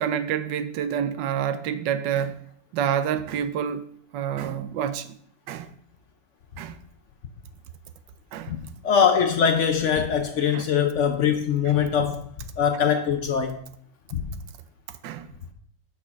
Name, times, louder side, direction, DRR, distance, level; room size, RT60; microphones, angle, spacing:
voice 1, 0.0-2.4 2.7-3.8 4.1-5.2 5.5-5.7 6.6-6.8 8.3-8.5 10.5-10.7 15.0-15.3, right 9 dB, 75° right, 1.2 m, -28 dB
voice 2, 8.8-12.3 12.6-13.6 14.1-14.3, left 7 dB, 75° left, 0.6 m, -22 dB
6.3 x 5.6 x 5.8 m
omnidirectional pair, 2.0 m